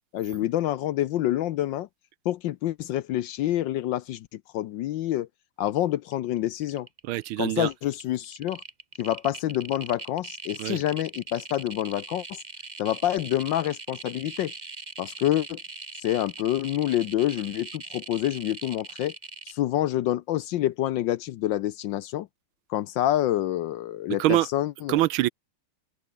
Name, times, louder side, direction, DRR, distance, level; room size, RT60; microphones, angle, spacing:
voice 1, 0.1-1.9 2.2-5.3 5.6-6.9 7.4-8.6 9.0-12.4 12.8-14.5 15.0-15.6 16.0-19.1 19.5-22.3 22.7-25.0, left 13 dB, 70° left, 1.2 m, -27 dB
sound 1, 6.1-6.4 6.6-7.2 7.6-19.5, right 3 dB, 20° right, 1.5 m, -41 dB
voice 2, 7.0-7.7 10.6-10.8 24.2-24.5 24.9-25.3, right 15 dB, 75° right, 1.4 m, -24 dB
open air
omnidirectional pair, 2.4 m